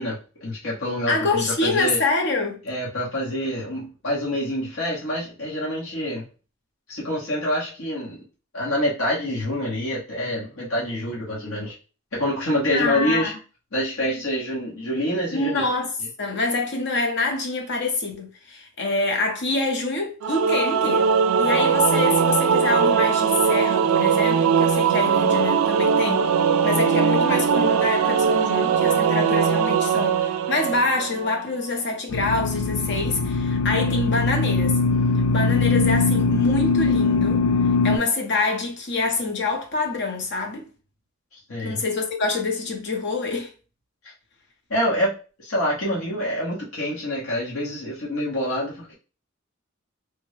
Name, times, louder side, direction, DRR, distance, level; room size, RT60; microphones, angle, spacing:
voice 1, 0.0-2.0 2.7-6.2 6.9-8.2 8.5-11.7 12.2-13.3 13.7-15.7 41.5-41.8 44.7-45.2 45.4-48.9, equal, 90° left, 1.2 m, -26 dB
voice 2, 1.1-2.6 12.7-13.4 15.3-15.9 16.2-21.1 21.4-26.3 26.6-34.8 35.3-37.5 37.8-40.7 41.6-43.5, left 3 dB, 60° left, 0.8 m, -26 dB
Singing / Musical instrument, 20.2-31.5, right 6 dB, 90° right, 0.3 m, -20 dB
sound 1, 32.1-38.0, left 3 dB, 75° left, 0.4 m, -21 dB
3.4 x 2.1 x 3.2 m
head